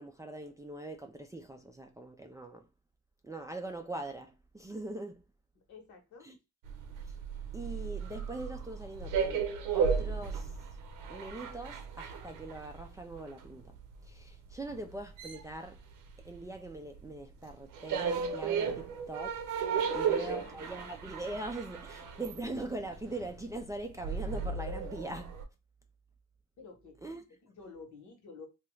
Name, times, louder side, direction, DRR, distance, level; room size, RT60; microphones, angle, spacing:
voice 1, 0.0-2.7 3.2-5.2 6.2-6.4 7.5-10.6 11.1-13.8 14.0-15.8 16.2-19.3 19.9-25.3 27.0-27.2, right 2 dB, 10° right, 0.3 m, -42 dB
voice 2, 5.7-6.3 18.7-18.9 19.7-20.9 26.6-27.0 27.4-28.5, left 4 dB, 70° left, 1.2 m, -51 dB
sound 1, 6.7-16.7 17.0-25.4, right 6 dB, 90° right, 0.7 m, -35 dB
2.8 x 2.4 x 3.1 m
cardioid pair, 115°, 30 cm